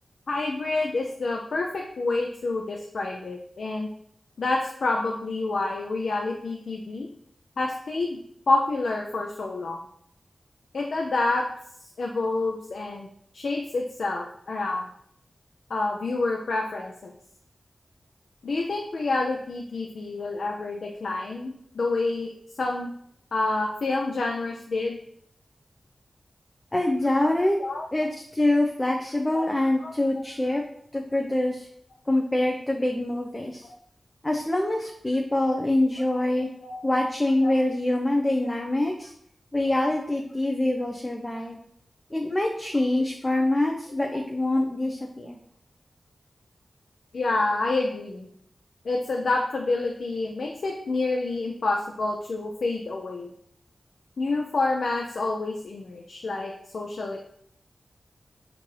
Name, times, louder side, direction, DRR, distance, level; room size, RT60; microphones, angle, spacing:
voice 1, 0.3-3.9 4.4-7.1 7.6-8.2 8.5-9.8 10.7-11.5 12.0-13.1 13.3-14.9 15.7-17.1 18.4-22.3 22.6-22.9 23.3-25.0 27.6-27.9 29.3-29.5 29.8-29.9 33.6-33.7 36.6-36.8 37.4-37.5 44.1-44.2 47.1-48.3 48.8-53.3 54.2-57.2, left 3 dB, 85° left, 0 dB, 0.4 m, -28 dB
voice 2, 26.7-27.6 27.9-30.6 30.9-31.7 32.1-33.6 34.2-36.5 36.8-39.1 39.5-41.6 42.1-45.4, left 1 dB, 25° left, 1 dB, 0.5 m, -25 dB
4.4 x 2.5 x 3.1 m, 0.68 s
cardioid pair, 60°, 0 cm